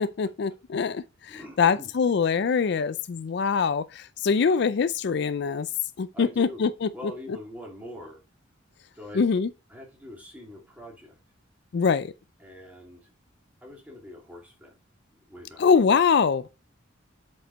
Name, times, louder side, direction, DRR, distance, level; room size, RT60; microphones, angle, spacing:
voice 1, 0.0-5.7 6.0-6.9 9.2-9.5 11.7-12.1 15.6-16.5, left 5 dB, 55° left, 0.4 m, -23 dB
voice 2, 1.3-1.9 6.1-6.6 6.9-8.2 8.9-9.3 9.7-11.2 12.4-13.1 13.6-14.8 15.3-15.6, left 1 dB, 10° right, 2.7 m, -43 dB
7.8 x 5.2 x 4.0 m
head